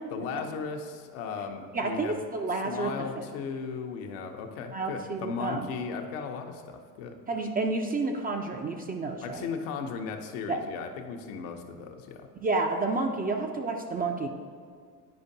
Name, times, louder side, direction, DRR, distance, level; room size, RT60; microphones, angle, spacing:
voice 1, 0.1-2.2 2.7-7.2 9.2-12.3, left 5 dB, 65° left, 4 dB, 0.9 m, -36 dB
voice 2, 1.7-3.2 4.7-5.7 7.3-9.5 10.5-10.6 12.4-14.3, right 3 dB, 20° right, 3 dB, 0.5 m, -30 dB
9.5 x 5.0 x 2.7 m, 2.1 s
hypercardioid pair, 75°, 47 cm